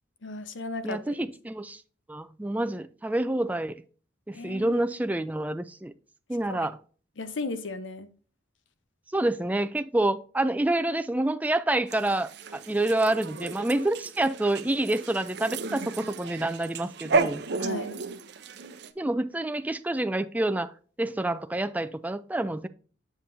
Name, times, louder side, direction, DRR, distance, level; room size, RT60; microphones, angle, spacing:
voice 1, 0.2-1.0 4.3-4.8 6.5-6.7 7.2-8.1 17.6-17.9, left 3 dB, 70° left, 0.8 m, -35 dB
voice 2, 0.8-1.8 2.1-3.8 4.3-5.9 6.3-6.8 9.1-17.4 19.0-20.7 21.0-22.7, right 1 dB, 10° right, 0.4 m, -28 dB
sound 1, 11.9-18.9, right 4 dB, 60° right, 0.6 m, -33 dB
7.4 x 7.2 x 2.7 m
head